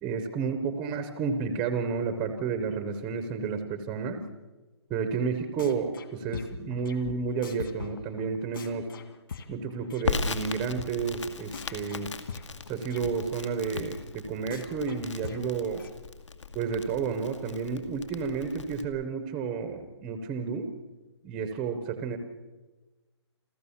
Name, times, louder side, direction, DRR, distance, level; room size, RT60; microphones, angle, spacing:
voice 1, 0.0-4.2 4.9-8.9 9.5-12.1 12.7-15.8 16.5-20.7 21.2-22.2, right 5 dB, 5° right, 8 dB, 0.6 m, -31 dB
sound 1, 5.6-6.1 6.3-10.1 10.4-10.5 10.8-10.9 11.2-11.3 11.5-13.1 13.4-13.5 13.8-13.9 14.1-14.2 14.5-15.9, left 6 dB, 50° left, 1.9 m, -41 dB
Crackle, 10.0-18.8, left 4 dB, 85° left, 2.3 m, -38 dB
28.0 x 14.5 x 7.0 m, 1.2 s
hypercardioid pair, 175°, 15 cm